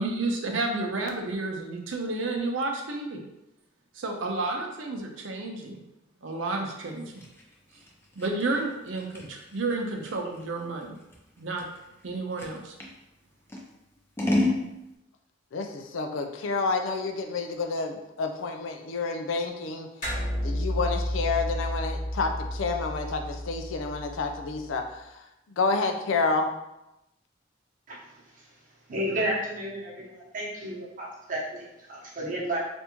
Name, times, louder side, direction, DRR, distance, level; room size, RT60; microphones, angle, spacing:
voice 1, 0.0-3.3 3.9-5.8 6.2-7.2 8.2-11.0 11.4-11.7 12.0-12.7, right 2 dB, 75° right, 2 dB, 0.6 m, -31 dB
Scissors, 6.8-13.0 13.5-14.6, left 2 dB, 10° left, 0.5 m, -32 dB
voice 2, 15.5-19.9 20.4-24.8 25.6-26.5, left 4 dB, 85° left, 5 dB, 0.4 m, -29 dB
sound 1, 20.0-24.8, equal, 45° left, 1.1 m, -32 dB
voice 3, 28.9-32.6, right 1 dB, 45° right, -5 dB, 0.9 m, -32 dB
3.4 x 2.6 x 2.9 m, 0.91 s
head